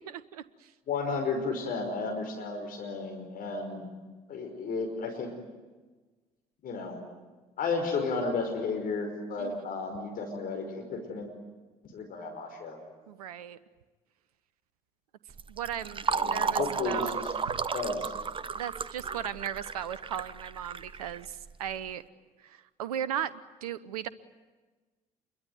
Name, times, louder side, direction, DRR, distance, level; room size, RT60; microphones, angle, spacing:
voice 1, 0.0-0.7 9.4-9.8 13.1-13.6 15.5-17.2 17.5-17.6 18.5-22.0 22.4-24.1, right 10 dB, 70° right, 17 dB, 0.8 m, -37 dB
voice 2, 0.9-3.9 4.3-5.3 6.6-7.0 7.6-11.3 11.9-12.8 16.1-17.3 17.7-18.1, left 4 dB, 45° left, 3 dB, 5.3 m, -33 dB
Fill (with liquid), 15.3-21.7, right 5 dB, 25° right, 1.0 m, -33 dB
27.0 x 23.0 x 9.6 m, 1.3 s
figure-of-eight pair, 50°, 20 cm